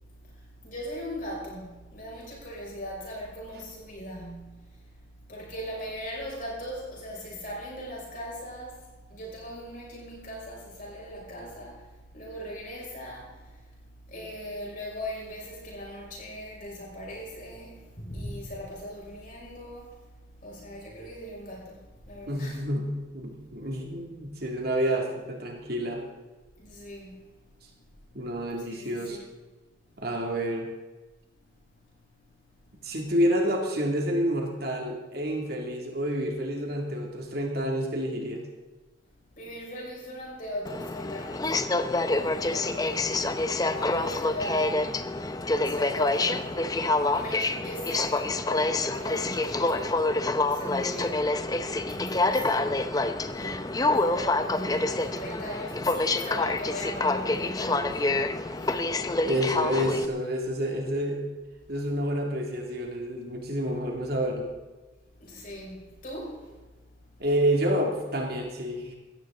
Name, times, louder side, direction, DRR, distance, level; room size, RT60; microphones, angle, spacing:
voice 1, 0.2-4.9 5.3-13.7 14.1-20.0 20.4-22.6 26.6-27.2 28.7-29.2 39.3-41.6 42.1-43.2 43.7-44.8 45.4-46.6 47.1-51.4 51.7-52.5 53.3-58.8 63.7-63.8 65.2-66.6, equal, 45° left, -3 dB, 5.9 m, -39 dB
voice 2, 22.3-22.8 23.1-26.0 28.1-29.2 30.0-30.7 32.8-38.5 59.2-61.2 61.7-64.5 67.2-69.0, equal, 50° right, 1 dB, 2.5 m, -28 dB
Aircraft, 40.6-60.1, left 2 dB, 20° left, 0.6 m, -27 dB
16.5 x 14.0 x 3.8 m, 1.2 s
head